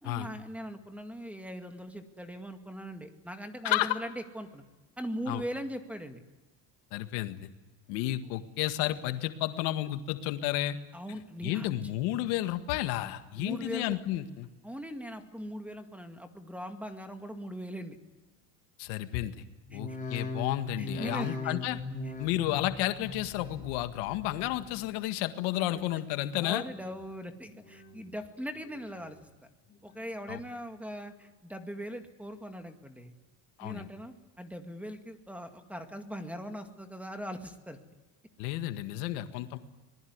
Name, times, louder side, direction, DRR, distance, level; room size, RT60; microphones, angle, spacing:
voice 1, 0.0-4.6 5.0-6.2 10.9-11.9 13.4-14.0 14.6-18.0 19.7-20.0 20.8-21.5 22.0-22.1 26.4-29.3 29.8-33.1 33.6-37.8, equal, 5° right, 6 dB, 2.1 m, -40 dB
voice 2, 3.6-4.0 5.3-5.4 6.9-7.5 7.9-10.8 11.4-14.5 18.8-19.4 19.7-21.8 22.2-26.6 30.3-30.4 33.6-33.9 38.4-39.6, left 14 dB, 85° left, 8 dB, 1.9 m, -32 dB
sound 1, 19.6-25.0 25.3-25.9 26.4-27.0 27.5-28.1 28.6-29.2 29.7-30.3 30.8-30.9, left 3 dB, 15° left, 4.2 m, -41 dB
25.5 x 20.0 x 9.6 m, 1.2 s
cardioid pair, 140°, 45 cm